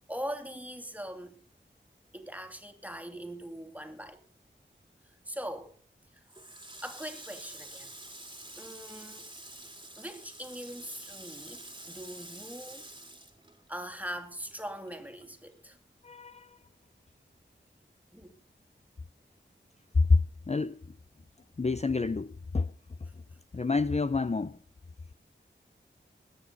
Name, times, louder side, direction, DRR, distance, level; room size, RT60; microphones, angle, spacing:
voice 1, 0.1-1.4 2.1-4.2 5.1-5.7 6.8-7.9 8.6-9.3 10.0-11.6 11.9-12.9 13.7-15.8 18.1-18.3, equal, 10° right, 2.5 m, -41 dB
Water tap faucet, 6.3-14.1 14.4-15.8, right 1 dB, 25° right, 2.4 m, -48 dB
voice 2, 16.0-16.5 20.1-20.2 20.5-20.8 21.6-22.7 23.5-24.6, left 3 dB, 35° left, 0.5 m, -28 dB
21.5 x 9.8 x 4.1 m
wide cardioid pair, 70°, 20 cm